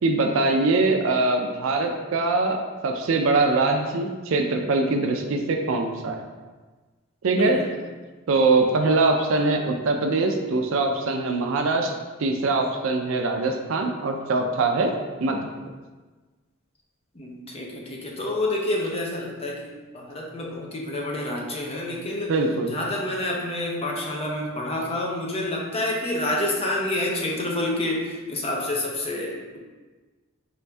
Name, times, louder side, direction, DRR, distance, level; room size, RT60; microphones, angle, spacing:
voice 1, 0.0-6.2 7.2-7.6 8.3-14.9 15.2-15.4 22.3-22.8, right 3 dB, 65° right, 3 dB, 0.4 m, -23 dB
voice 2, 17.1-22.3 22.7-29.6, left 1 dB, 25° left, -1 dB, 0.5 m, -28 dB
4.5 x 2.6 x 3.3 m, 1.3 s
head